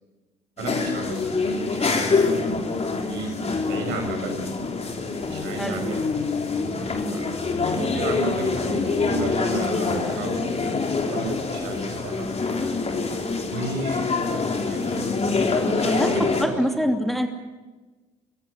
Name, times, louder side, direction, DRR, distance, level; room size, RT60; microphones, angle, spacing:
sound 1, 0.6-16.4, left 4 dB, 35° left, 3.8 m, -25 dB
voice 1, 0.6-2.4 3.1-4.5 4.8-6.0 7.1-7.4 7.7-10.8 11.0-12.3 13.5-14.1 14.3-15.2 15.7-16.9, right 2 dB, 70° right, 4 dB, 6.3 m, -33 dB
voice 2, 5.6-6.0 6.9-7.2 15.8-17.3, equal, ahead, 4 dB, 2.8 m, -26 dB
25.5 x 16.0 x 9.0 m, 1.2 s
hypercardioid pair, 50°, 19 cm